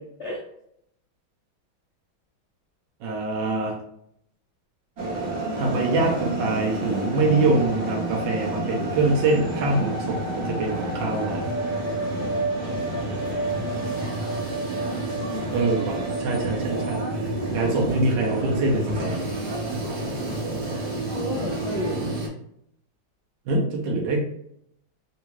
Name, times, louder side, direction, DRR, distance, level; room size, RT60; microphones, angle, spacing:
voice 1, 3.0-3.7 5.5-11.4 15.5-17.0 17.5-19.3 23.5-24.2, right 3 dB, 70° right, -1 dB, 1.2 m, -24 dB
sound 1, 5.0-22.3, right 2 dB, 45° right, 0.9 m, -29 dB
voice 2, 14.8-16.4 21.1-22.1, left 1 dB, 75° left, -5 dB, 0.6 m, -34 dB
3.7 x 2.3 x 3.0 m, 0.73 s
omnidirectional pair, 2.2 m